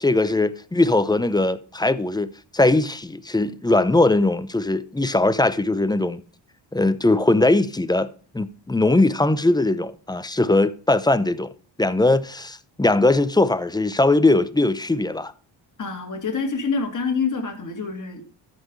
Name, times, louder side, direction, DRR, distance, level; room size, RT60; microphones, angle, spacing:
voice 1, 0.0-6.2 6.7-8.1 8.3-11.5 11.8-15.3, left 2 dB, 10° left, 0.7 m, -20 dB
voice 2, 15.8-18.2, left 5 dB, 40° left, 2.8 m, -26 dB
13.5 x 6.0 x 4.9 m
cardioid pair, 110°, 46 cm